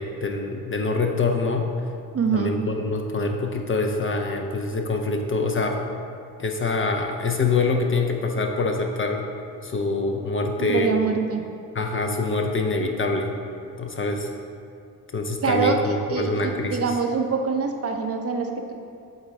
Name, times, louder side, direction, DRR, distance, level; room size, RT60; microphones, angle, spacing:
voice 1, 0.0-1.7 2.3-5.8 6.4-9.3 9.6-10.9 11.7-13.4 13.8-14.3 15.1-17.0, left 3 dB, 30° left, 3 dB, 0.6 m, -25 dB
voice 2, 2.1-2.5 10.6-11.4 15.4-18.7, right 5 dB, 30° right, 4 dB, 0.7 m, -24 dB
7.8 x 4.0 x 3.4 m, 2.4 s
figure-of-eight pair, 40°, 46 cm